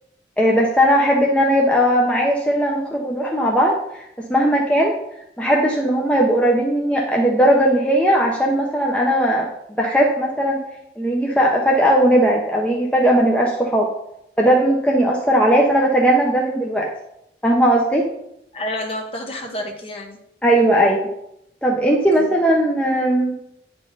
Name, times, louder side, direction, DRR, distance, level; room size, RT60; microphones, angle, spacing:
voice 1, 0.4-4.9 5.4-9.5 9.8-10.6 11.0-13.9 14.4-16.9 17.4-18.1 20.4-21.1 21.6-23.4, equal, 5° left, -2 dB, 0.8 m, -18 dB
voice 2, 18.5-20.2 22.1-22.3, left 1 dB, 35° left, 2 dB, 1.2 m, -29 dB
9.8 x 5.4 x 3.9 m, 0.79 s
head